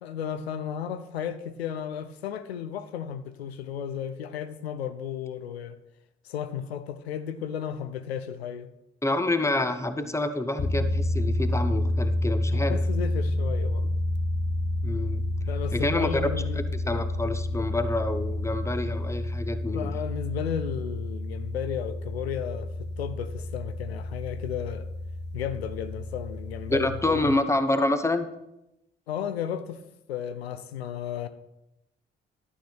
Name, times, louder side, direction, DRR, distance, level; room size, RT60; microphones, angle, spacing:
voice 1, 0.0-5.8 6.2-8.7 12.5-13.9 15.5-16.6 19.7-24.9 25.3-27.4 29.1-29.8 30.1-31.3, left 9 dB, 85° left, 0.5 m, -34 dB
voice 2, 9.0-12.8 14.8-15.2 15.7-16.3 16.6-19.9 26.7-28.3, left 2 dB, 10° left, 0.9 m, -27 dB
sound 1, 10.6-27.3, left 1 dB, 35° left, 1.2 m, -29 dB
11.5 x 6.7 x 4.4 m
figure-of-eight pair, 45°, 31 cm